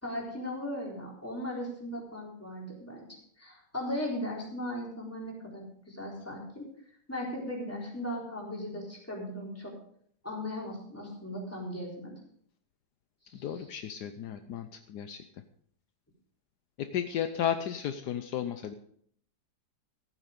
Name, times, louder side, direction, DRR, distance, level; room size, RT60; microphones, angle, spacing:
voice 1, 0.0-3.0 3.4-6.7 7.1-9.7 10.2-12.1 13.3-13.5, left 1 dB, 10° left, -3 dB, 4.1 m, -37 dB
voice 2, 13.3-15.2 16.8-18.7, left 9 dB, 75° left, 8 dB, 1.3 m, -34 dB
15.0 x 9.1 x 5.2 m, 0.64 s
omnidirectional pair, 1.9 m